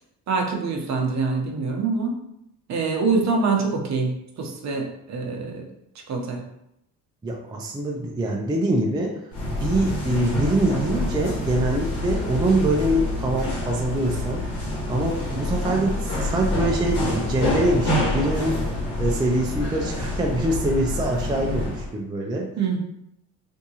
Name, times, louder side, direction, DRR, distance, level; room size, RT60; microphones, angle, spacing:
voice 1, 0.3-2.2 2.7-5.7 6.1-6.4 22.6-22.8, right 4 dB, 45° right, 1 dB, 0.8 m, -25 dB
voice 2, 7.2-9.2 9.5-14.4 14.8-18.6 19.0-22.5, right 1 dB, 10° right, -1 dB, 0.4 m, -24 dB
sound 1, 9.3-21.9, left 1 dB, 90° left, 1.5 m, -27 dB
3.5 x 2.7 x 2.8 m, 0.81 s
cardioid pair, 100°, 38 cm